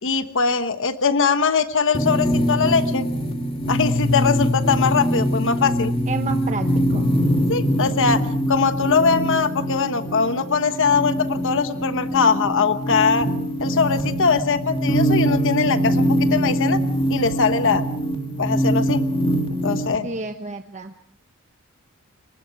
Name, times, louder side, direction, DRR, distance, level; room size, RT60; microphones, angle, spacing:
voice 1, 0.0-3.1 3.7-5.9 7.5-13.3 13.6-16.8 17.1-17.8 18.4-19.0 19.6-20.1, left 5 dB, 60° left, 10 dB, 1.2 m, -21 dB
sound 1, 1.9-20.0, equal, 25° left, 2.4 m, -23 dB
voice 2, 6.1-7.0 20.0-20.9, right 3 dB, 35° right, 6 dB, 1.1 m, -30 dB
29.5 x 23.5 x 4.7 m, 0.62 s
head